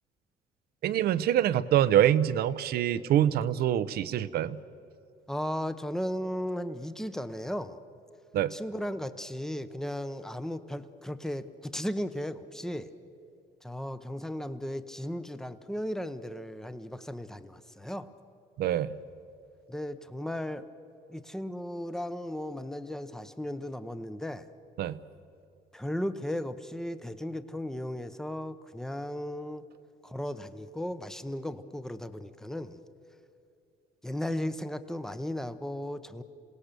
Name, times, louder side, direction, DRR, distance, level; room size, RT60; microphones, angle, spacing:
voice 1, 0.8-4.6 8.3-8.5 18.6-18.9 24.8-25.0, right 11 dB, 70° right, 15 dB, 0.8 m, -25 dB
voice 2, 5.3-7.8 8.5-12.9 13.6-18.1 19.7-20.7 21.1-24.5 25.7-29.7 30.0-32.8 34.0-36.2, left 1 dB, 5° left, 11 dB, 0.9 m, -36 dB
27.5 x 18.0 x 6.8 m, 2.6 s
cardioid pair, 110°, 17 cm